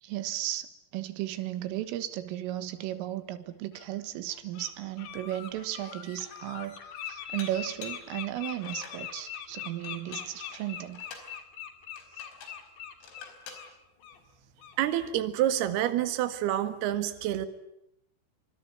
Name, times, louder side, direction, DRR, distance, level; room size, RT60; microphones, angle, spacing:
voice 1, 0.0-11.1, right 13 dB, 85° right, 4.0 m, -35 dB
Bird, 2.9-3.0 3.7-3.9 4.3-4.7 5.0-13.7 14.0-14.2 14.6-14.8, left 9 dB, 60° left, 4.4 m, -42 dB
Dishes pots and pans, 5.3-5.4 5.9-6.5 7.4-8.1 8.5-9.0 9.8-11.3 12.0-12.6 13.0-13.7, left 4 dB, 85° left, 7.1 m, -48 dB
voice 2, 14.8-17.5, right 12 dB, 60° right, 3.2 m, -28 dB
25.5 x 25.0 x 9.3 m
omnidirectional pair, 5.8 m